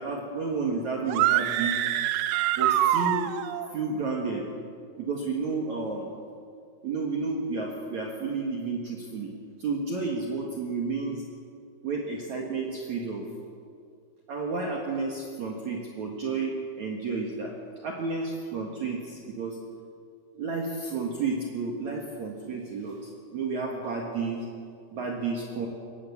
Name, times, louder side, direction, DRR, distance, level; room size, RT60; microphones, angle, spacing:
voice 1, 0.0-1.8 2.6-3.3 3.7-4.4 5.0-6.2 6.8-9.3 9.6-11.2 11.8-13.3 14.3-17.5 17.8-19.6 20.3-24.5 24.9-25.7, right 4 dB, 55° right, 0 dB, 2.7 m, -31 dB
sound 1, 1.1-3.7, right 12 dB, 90° right, 1.9 m, -25 dB
23.0 x 19.0 x 7.2 m, 2.3 s
omnidirectional pair, 4.8 m